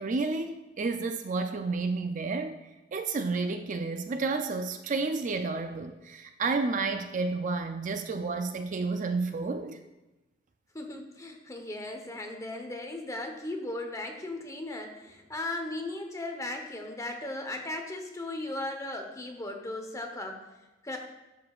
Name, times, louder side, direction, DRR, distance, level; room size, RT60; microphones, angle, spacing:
voice 1, 0.0-2.6 2.9-9.8, right 3 dB, 40° right, 7 dB, 0.4 m, -31 dB
voice 2, 10.7-20.4 20.8-21.0, left 2 dB, 15° left, 3 dB, 0.9 m, -37 dB
11.5 x 6.7 x 2.4 m, 1.1 s
head